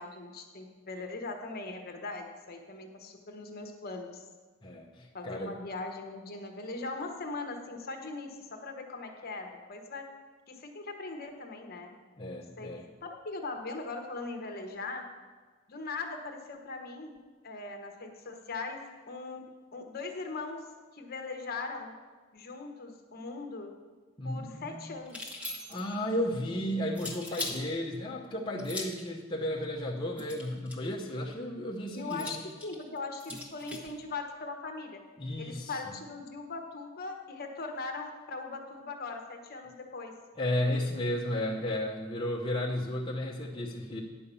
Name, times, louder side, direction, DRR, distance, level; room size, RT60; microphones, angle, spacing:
voice 1, 0.0-4.3 5.1-10.1 10.5-11.9 12.6-15.1 15.7-17.1 17.4-18.8 19.1-19.4 19.7-20.6 20.9-21.9 22.3-23.7 24.2-25.3 31.9-35.0 35.4-40.1, left 3 dB, 50° left, 4 dB, 1.1 m, -40 dB
voice 2, 4.6-5.6 12.2-12.9 24.2-24.9 25.5-32.4 35.2-36.0 40.4-44.0, left 1 dB, 25° left, -3 dB, 0.8 m, -33 dB
sound 1, 25.1-26.0 27.0-27.6 28.6-29.1 30.2-30.9 32.1-33.9, left 2 dB, 5° right, 1.2 m, -40 dB
9.9 x 5.6 x 6.9 m, 1.4 s
head